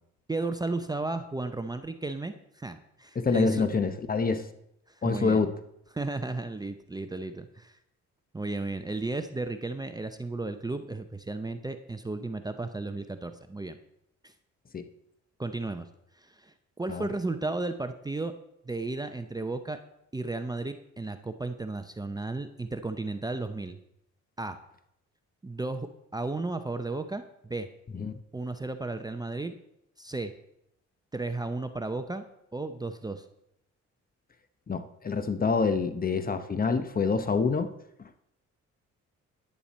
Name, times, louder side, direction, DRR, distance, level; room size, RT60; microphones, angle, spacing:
voice 1, 0.3-3.6 5.0-5.4 5.9-7.7 8.3-13.8 14.2-14.3 15.4-15.9 16.2-18.3 18.6-19.8 20.1-23.8 24.4-24.6 25.4-27.7 28.3-29.5 30.0-30.3 31.1-32.2 32.5-33.2, right 2 dB, 15° right, 8 dB, 0.6 m, -34 dB
voice 2, 3.1-4.4 5.0-5.5 14.7-14.9 16.9-17.1 27.9-28.1 34.7-37.7 38.0-38.1, left 4 dB, 30° left, 10 dB, 0.9 m, -26 dB
10.5 x 10.5 x 4.2 m, 0.79 s
cardioid pair, 90°, 30 cm